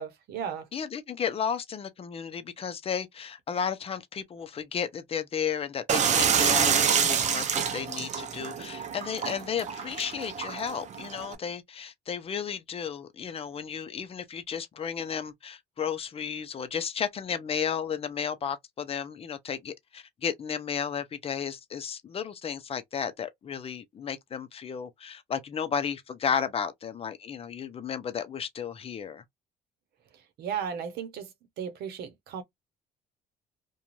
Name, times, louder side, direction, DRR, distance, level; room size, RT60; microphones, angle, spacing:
voice 1, 0.0-0.7 30.1-31.3 31.6-32.4, right 7 dB, 70° right, 0.8 m, -35 dB
voice 2, 0.7-29.2, left 7 dB, 35° left, 0.6 m, -33 dB
sound 1, 5.9-11.4, right 7 dB, 45° right, 0.6 m, -27 dB
2.5 x 2.3 x 2.9 m
cardioid pair, 110°, 17 cm